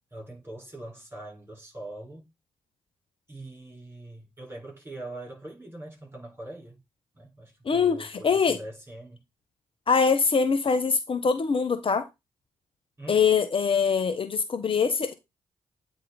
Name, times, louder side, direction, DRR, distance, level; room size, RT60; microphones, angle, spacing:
voice 1, 0.1-2.3 3.3-6.8 7.1-9.2 13.0-13.4, right 1 dB, 20° right, 5.5 m, -42 dB
voice 2, 7.6-8.6 9.9-12.0 13.1-15.1, left 5 dB, 45° left, 1.0 m, -23 dB
9.1 x 3.7 x 4.3 m
hypercardioid pair, 45°, 13 cm